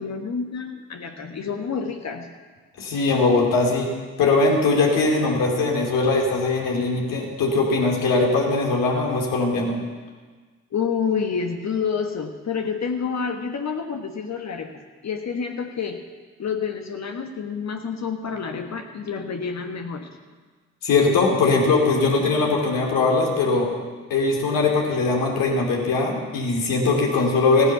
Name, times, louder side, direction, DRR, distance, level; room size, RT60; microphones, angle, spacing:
voice 1, 0.0-2.3 10.7-16.0 16.4-20.1, left 6 dB, 55° left, 4 dB, 1.4 m, -28 dB
voice 2, 2.8-3.9 4.2-9.8 20.8-23.7 24.1-27.7, left 3 dB, 75° left, 0 dB, 2.8 m, -20 dB
15.0 x 9.6 x 6.9 m, 1.4 s
hypercardioid pair, 40°, 33 cm